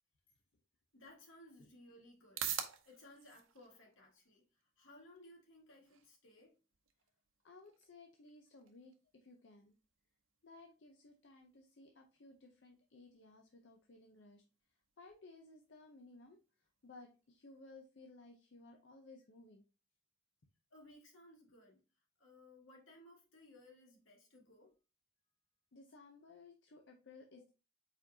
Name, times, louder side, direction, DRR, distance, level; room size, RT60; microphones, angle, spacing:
voice 1, 0.9-2.5 2.8-4.4 4.8-6.5 20.7-21.8 22.2-24.7, left 1 dB, 80° left, 1.7 m, -60 dB
sound 1, 0.9-17.9, right 9 dB, 80° right, 0.7 m, -52 dB
voice 2, 7.4-9.8 10.4-14.4 15.0-16.4 16.8-19.6 25.7-27.5, left 3 dB, 60° left, 0.6 m, -58 dB
4.5 x 4.4 x 2.6 m
head